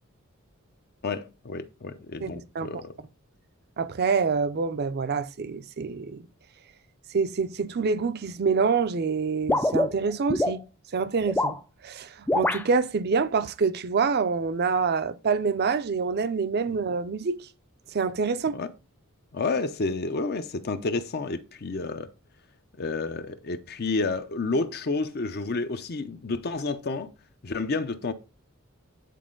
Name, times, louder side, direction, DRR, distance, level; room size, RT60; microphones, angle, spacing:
voice 1, 1.0-2.9 18.5-18.7 19.3-22.1 22.8-27.1 27.4-28.1, left 3 dB, 50° left, 0.7 m, -30 dB
voice 2, 2.2-2.8 3.8-6.3 7.1-10.6 10.9-11.6 11.8-17.5 17.9-18.6, right 5 dB, 50° right, 0.5 m, -26 dB
sound 1, 9.5-10.6 11.2-11.6 12.3-12.6, left 1 dB, 10° left, 0.4 m, -24 dB
9.3 x 4.3 x 3.8 m
head